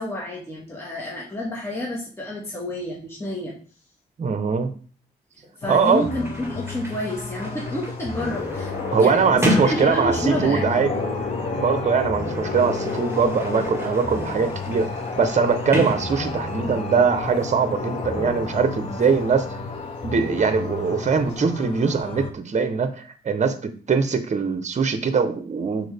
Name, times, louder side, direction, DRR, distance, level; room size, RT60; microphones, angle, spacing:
voice 1, 0.0-3.5 5.6-10.6, equal, 15° left, -4 dB, 1.8 m, -29 dB
voice 2, 4.2-4.7 5.7-6.1 8.9-10.9 11.6-14.9 15.2-19.5 20.0-23.5 23.9-25.9, right 5 dB, 40° right, 9 dB, 0.9 m, -22 dB
Sliding door, 5.4-5.5 5.7-10.8 11.7-16.7, equal, 15° right, 2.2 m, -32 dB
sound 1, 5.6-22.3, left 4 dB, 35° left, 0.8 m, -34 dB
sound 2, 8.1-21.4, left 3 dB, 85° left, 2.3 m, -32 dB
6.1 x 4.5 x 3.5 m, 0.40 s
cardioid pair, 95°, 18 cm